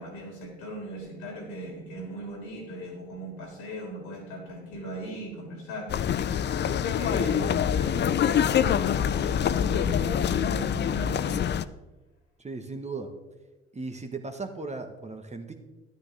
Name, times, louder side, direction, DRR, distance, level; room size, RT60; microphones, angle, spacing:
voice 1, 0.0-11.5, equal, 75° left, 0 dB, 3.5 m, -39 dB
sound 1, 5.9-11.6, left 9 dB, 35° left, 0.5 m, -25 dB
voice 2, 12.4-13.1 13.7-15.5, right 3 dB, 20° right, 5 dB, 1.4 m, -36 dB
11.5 x 10.0 x 3.4 m, 1.1 s
hypercardioid pair, 55°, 31 cm